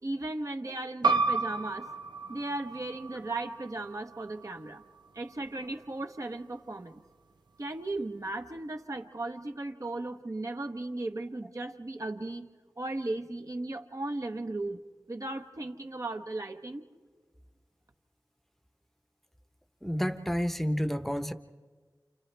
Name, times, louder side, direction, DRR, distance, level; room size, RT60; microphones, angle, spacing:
voice 1, 0.0-1.9 2.3-4.8 5.1-7.0 7.6-12.5 12.8-14.8 15.1-16.9, right 2 dB, 45° right, 4 dB, 1.2 m, -36 dB
sound 1, 1.0-6.2, right 4 dB, 90° right, 0.7 m, -33 dB
voice 2, 19.8-21.3, equal, 5° left, 9 dB, 1.0 m, -30 dB
29.5 x 27.5 x 3.4 m, 1.5 s
wide cardioid pair, 45°, 7 cm